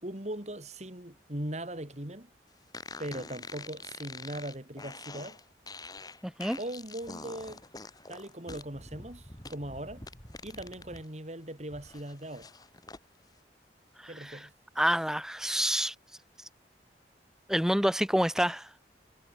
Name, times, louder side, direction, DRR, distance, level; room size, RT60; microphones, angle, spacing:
voice 1, 0.0-2.3 3.0-5.4 6.6-7.7 8.1-10.1 10.4-12.5 14.1-14.5, right 1 dB, 40° right, 3.4 m, -39 dB
sound 1, 2.7-11.0 11.4-13.0, left 3 dB, 20° left, 7.9 m, -46 dB
voice 2, 6.2-6.6 14.0-14.4 14.8-15.9 17.5-18.7, equal, 5° right, 1.8 m, -28 dB
head